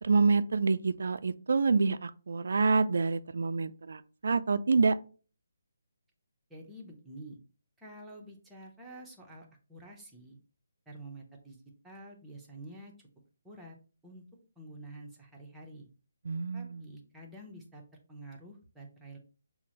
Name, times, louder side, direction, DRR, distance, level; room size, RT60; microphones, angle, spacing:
voice 1, 0.0-5.0 16.3-16.8, right 4 dB, 65° right, 0.3 m, -27 dB
voice 2, 6.5-7.4 7.8-10.4 10.9-11.6 11.8-12.9 13.4-13.8 14.0-14.2 14.6-15.9 16.5-19.2, right 1 dB, 5° right, 0.8 m, -48 dB
5.9 x 2.1 x 2.9 m
figure-of-eight pair, 150°, 0 cm